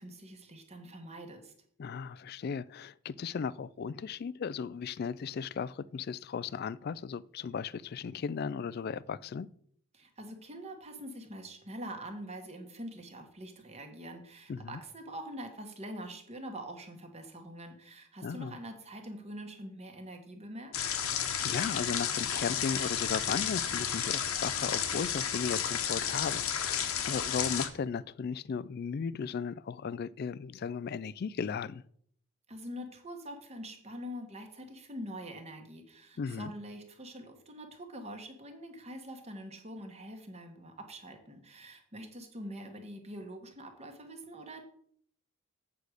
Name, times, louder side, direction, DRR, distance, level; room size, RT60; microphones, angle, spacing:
voice 1, 0.0-1.5 9.9-20.8 32.5-44.6, equal, 30° right, 1.4 m, -44 dB
voice 2, 1.8-9.5 14.5-14.8 18.2-18.6 21.4-31.8 36.2-36.5, left 6 dB, 45° left, 0.3 m, -36 dB
sound 1, 20.7-27.7, left 8 dB, 80° left, 1.1 m, -32 dB
8.4 x 4.8 x 6.5 m
head